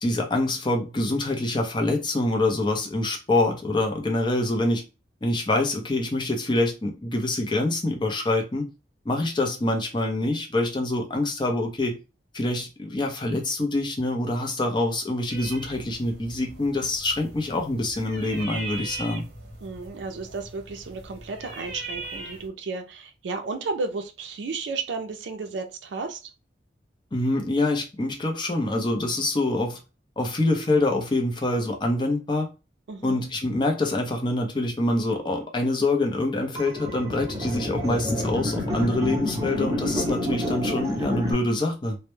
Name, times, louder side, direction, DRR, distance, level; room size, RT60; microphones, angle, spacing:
voice 1, 0.0-4.8 5.2-8.7 9.1-12.0 12.3-19.2 27.1-29.8 30.2-32.5 33.0-42.0, left 2 dB, 25° left, 0.5 m, -25 dB
sound 1, 15.3-22.5, right 2 dB, 55° right, 0.8 m, -40 dB
voice 2, 19.6-26.3 32.9-33.2, right 4 dB, 75° right, 0.4 m, -33 dB
sound 2, 36.6-41.3, left 1 dB, 20° right, 0.7 m, -28 dB
2.1 x 2.0 x 2.9 m
head